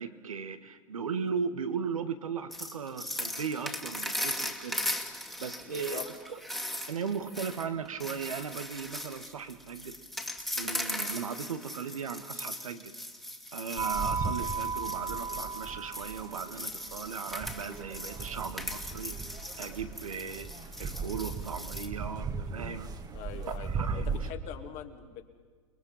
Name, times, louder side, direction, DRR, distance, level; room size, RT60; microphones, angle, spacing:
voice 1, 0.0-4.8 5.4-6.4 6.9-10.0 10.5-12.9 13.5-19.2 19.6-20.5 20.8-22.9 23.6-24.3, right 6 dB, 85° right, 9 dB, 1.6 m, -37 dB
sound 1, 2.5-21.9, left 1 dB, ahead, 2.2 m, -39 dB
voice 2, 5.7-6.1 23.1-23.7 24.0-25.2, left 10 dB, 45° left, 6 dB, 2.5 m, -42 dB
sound 2, 13.8-24.3, right 5 dB, 25° right, 1.7 m, -36 dB
29.0 x 20.5 x 5.7 m, 1.5 s
hypercardioid pair, 100°, 17 cm